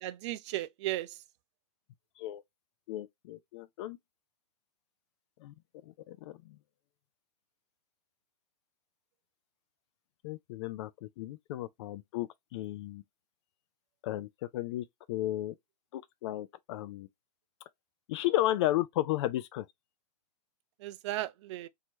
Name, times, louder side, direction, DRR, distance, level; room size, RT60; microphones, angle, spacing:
voice 1, 0.0-1.1 20.8-21.7, right 15 dB, 45° right, 0.4 m, -35 dB
voice 2, 2.9-4.0 5.4-5.5 5.8-6.6 10.2-13.0 14.0-15.5 15.9-17.1 18.1-19.7, left 15 dB, 45° left, 0.4 m, -34 dB
4.3 x 2.8 x 3.1 m
hypercardioid pair, 115°, 21 cm